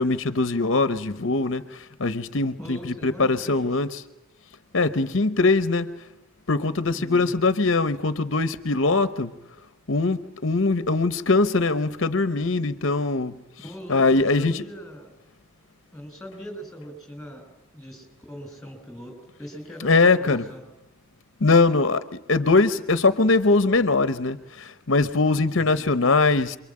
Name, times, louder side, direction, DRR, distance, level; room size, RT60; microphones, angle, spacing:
voice 1, 0.0-2.8 3.0-3.9 4.7-5.9 6.5-9.3 9.9-13.3 13.9-14.6 19.8-20.4 21.4-22.0 22.3-26.6, left 3 dB, 60° left, 0.9 m, -21 dB
voice 2, 2.6-3.8 6.8-7.5 13.6-15.1 15.9-17.4 17.7-19.1 19.4-20.6 25.5-25.9, equal, 5° left, 6.9 m, -40 dB
28.0 x 23.5 x 8.7 m
head